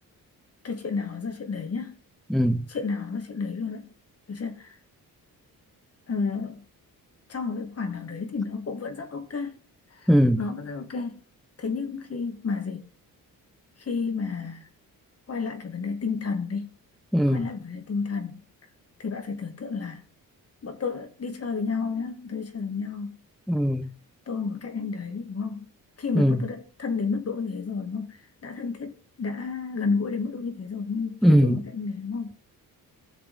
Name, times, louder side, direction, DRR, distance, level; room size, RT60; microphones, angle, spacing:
voice 1, 0.6-2.0 2.7-3.9 4.3-4.7 6.1-6.6 7.3-9.5 10.0-10.1 10.4-11.2 11.6-12.8 13.8-14.7 15.3-16.7 17.3-18.4 19.0-20.0 20.6-23.2 24.3-25.7 26.0-28.2 28.4-28.9 29.2-32.3, left 4 dB, 40° left, 2.3 m, -31 dB
voice 2, 2.3-2.6 10.1-10.4 17.1-17.4 23.5-23.9 26.2-26.4 31.2-31.6, equal, ahead, 0.7 m, -20 dB
17.5 x 6.8 x 3.8 m
cardioid pair, 105°, 36 cm